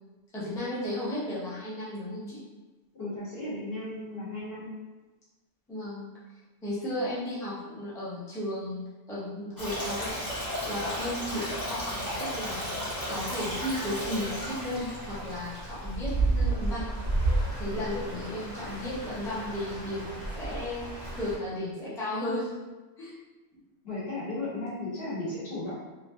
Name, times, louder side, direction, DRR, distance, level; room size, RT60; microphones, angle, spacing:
voice 1, 0.3-2.4 5.7-6.1 6.6-8.8 9.1-10.2 10.7-16.9 17.6-22.5 23.0-23.1, left 1 dB, 5° left, -8 dB, 0.5 m, -34 dB
voice 2, 2.9-4.7 23.8-25.9, left 2 dB, 60° left, -8 dB, 1.4 m, -35 dB
Stream, 9.6-21.3, right 1 dB, 20° left, 0.9 m, -32 dB
3.2 x 2.4 x 2.5 m, 1.1 s
omnidirectional pair, 1.2 m